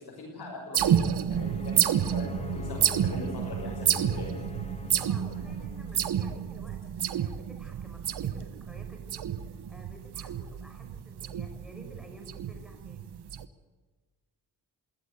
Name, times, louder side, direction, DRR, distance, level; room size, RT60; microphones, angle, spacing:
voice 1, 0.0-4.3, left 3 dB, 70° left, -4 dB, 6.7 m, -42 dB
sound 1, 0.7-13.4, right 9 dB, 75° right, 1.1 m, -30 dB
sound 2, 1.3-6.4, left 5 dB, 15° left, 1.8 m, -42 dB
voice 2, 5.0-13.1, equal, ahead, 3 dB, 5.7 m, -52 dB
21.5 x 17.0 x 8.2 m, 1.3 s
cardioid pair, 90°, 40 cm